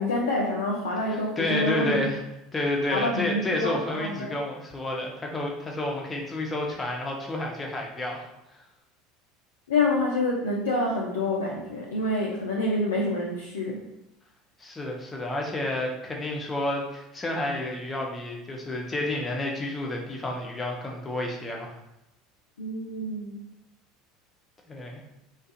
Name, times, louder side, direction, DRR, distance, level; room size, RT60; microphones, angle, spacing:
voice 1, 0.0-2.1 2.9-4.3 9.7-13.9 22.6-23.4, left 2 dB, 70° left, -3 dB, 0.3 m, -27 dB
voice 2, 1.1-2.2 2.5-8.2 8.5-8.6 14.6-21.7 24.7-25.0, left 1 dB, 20° left, 0 dB, 0.5 m, -30 dB
2.4 x 2.2 x 2.5 m, 0.86 s
figure-of-eight pair, 70°, 0 cm